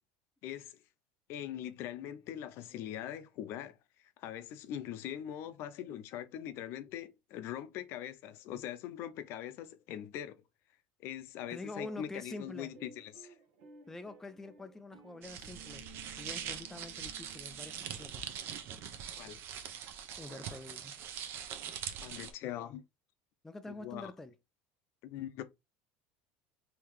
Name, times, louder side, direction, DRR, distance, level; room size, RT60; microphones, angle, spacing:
voice 1, 0.4-0.8 1.3-3.8 4.2-10.4 11.0-13.4 19.2-19.4 22.0-22.8 23.7-24.1 25.0-25.4, left 11 dB, 55° left, 0.5 m, -42 dB
voice 2, 11.5-12.7 13.9-15.9 16.2-18.4 20.2-21.0 23.4-24.3, left 2 dB, 10° left, 0.3 m, -46 dB
sound 1, 11.7-18.3, right 4 dB, 80° right, 1.2 m, -57 dB
sound 2, 15.2-22.3, right 8 dB, 50° right, 0.7 m, -43 dB
3.5 x 2.8 x 3.1 m
supercardioid pair, 125°, 5 cm